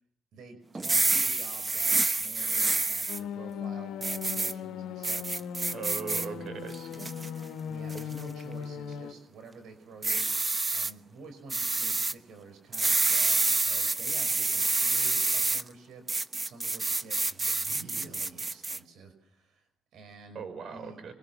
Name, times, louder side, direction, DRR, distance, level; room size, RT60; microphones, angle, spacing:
voice 1, 0.3-5.4 6.2-6.6 7.7-10.3 10.7-16.0 16.4-20.4 20.7-21.0, right 4 dB, 80° right, 7 dB, 5.5 m, -49 dB
sound 1, 0.7-3.2 4.0-4.5 5.0-6.3 6.7-7.3 7.9-8.2 10.0-10.9 11.5-12.1 12.7-15.6 16.1-18.8, right 3 dB, 25° right, 1.2 m, -28 dB
sound 2, 3.1-9.1, left 7 dB, 85° left, 1.6 m, -38 dB
voice 2, 5.7-7.1 20.3-21.1, right 6 dB, 60° right, 10 dB, 5.7 m, -39 dB
28.0 x 23.0 x 7.4 m, 0.68 s
cardioid pair, 90°, 0 cm